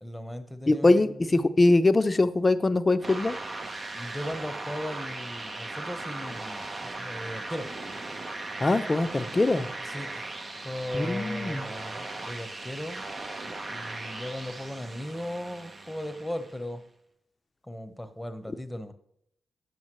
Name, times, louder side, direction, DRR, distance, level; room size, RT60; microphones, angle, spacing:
voice 1, 0.0-1.3 3.9-7.7 9.8-13.0 13.7-16.8 17.7-18.9, left 1 dB, 10° left, 10 dB, 1.1 m, -37 dB
voice 2, 0.7-3.4 8.6-9.7 10.9-11.6, left 2 dB, 30° left, 11 dB, 0.6 m, -22 dB
sound 1, 3.0-16.7, right 2 dB, 40° right, 0.9 m, -38 dB
9.3 x 7.3 x 3.1 m, 0.72 s
supercardioid pair, 45°, 0 cm